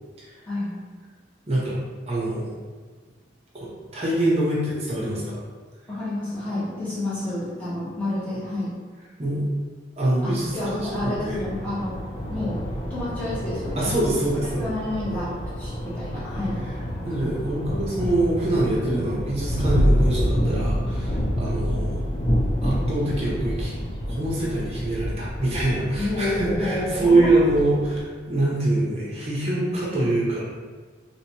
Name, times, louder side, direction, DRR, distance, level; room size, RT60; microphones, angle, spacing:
voice 1, 0.5-0.8 5.9-8.7 10.2-12.0 12.3-12.6 12.9-13.9 14.6-15.3 15.6-16.6 26.0-27.5, left 1 dB, 10° left, -11 dB, 1.3 m, -29 dB
voice 2, 1.5-1.8 2.1-2.5 3.5-3.7 3.9-5.4 9.2-9.4 10.0-10.8 11.0-11.4 13.8-14.6 17.0-22.0 22.6-23.7 24.1-30.4, right 1 dB, 35° right, -6 dB, 0.7 m, -24 dB
sound 1, 10.4-28.0, equal, 25° left, 0.4 m, -28 dB
3.3 x 2.9 x 2.8 m, 1.4 s
head